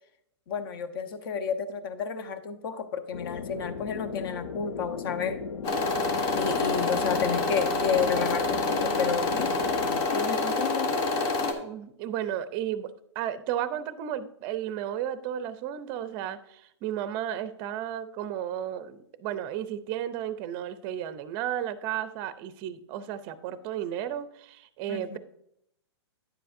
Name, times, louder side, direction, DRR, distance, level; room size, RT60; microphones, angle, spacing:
voice 1, 0.5-5.4 6.3-9.5 10.1-10.9 24.9-25.2, left 6 dB, 50° left, 10 dB, 0.9 m, -31 dB
sound 1, 3.1-10.1, left 5 dB, 90° left, 0.7 m, -37 dB
sound 2, 5.6-11.5, left 3 dB, 30° left, 1.0 m, -27 dB
voice 2, 11.6-12.9 13.2-25.2, right 10 dB, 30° right, 13 dB, 0.5 m, -33 dB
9.7 x 7.6 x 2.5 m, 0.75 s
hypercardioid pair, 150°, 15 cm